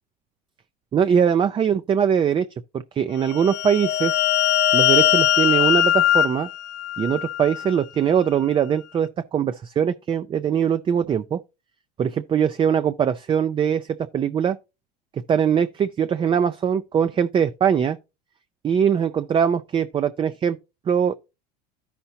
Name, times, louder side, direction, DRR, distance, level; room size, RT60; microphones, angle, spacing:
voice 1, 0.9-2.5 2.7-4.2 4.7-6.5 7.0-11.4 12.0-14.6 15.3-18.0 18.6-20.6 20.9-21.1, right 8 dB, 25° right, 0.4 m, -21 dB
sound 1, 3.3-7.8, left 13 dB, 55° left, 0.5 m, -21 dB
13.0 x 5.7 x 2.8 m
supercardioid pair, 105°, 21 cm